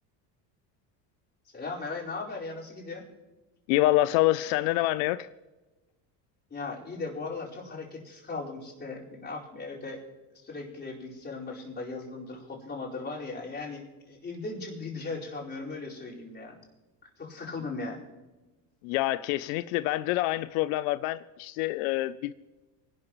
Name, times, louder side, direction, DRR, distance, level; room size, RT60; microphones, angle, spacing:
voice 1, 1.5-3.0 6.5-10.0 10.3-16.6 17.2-18.0, left 3 dB, 25° left, 4.7 m, -38 dB
voice 2, 3.7-5.3 18.8-22.3, left 16 dB, 85° left, 0.6 m, -26 dB
24.5 x 12.0 x 3.1 m
supercardioid pair, 115°, 41 cm